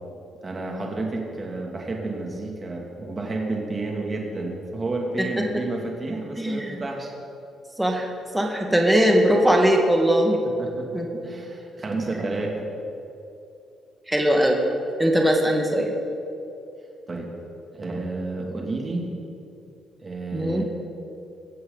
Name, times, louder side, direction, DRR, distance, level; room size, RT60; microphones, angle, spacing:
voice 1, 0.4-7.1 10.6-12.7 17.1-17.3 17.7-19.1 20.0-20.6, right 2 dB, 30° right, 0 dB, 2.5 m, -30 dB
voice 2, 6.4-6.8 7.8-10.4 10.9-11.1 12.0-12.1 14.1-14.6 15.0-15.9 20.3-20.6, equal, 5° right, 1 dB, 1.7 m, -20 dB
21.5 x 8.0 x 4.0 m, 2.7 s
cardioid pair, 90°, 0 cm